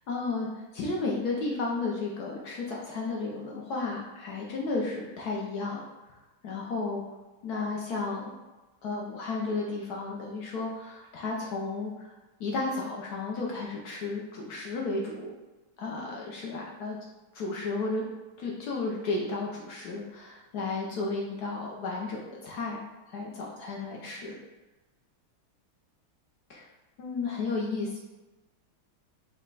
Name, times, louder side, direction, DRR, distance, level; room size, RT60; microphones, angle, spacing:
voice 1, 0.1-0.5 0.7-5.8 6.4-7.0 7.4-8.3 8.8-12.1 12.4-15.3 15.8-17.0 17.3-18.0 18.4-24.4 26.5-26.7 27.0-28.0, left 3 dB, 70° left, -2 dB, 0.9 m, -33 dB
5.3 x 2.2 x 3.9 m, 1.1 s
omnidirectional pair, 2.4 m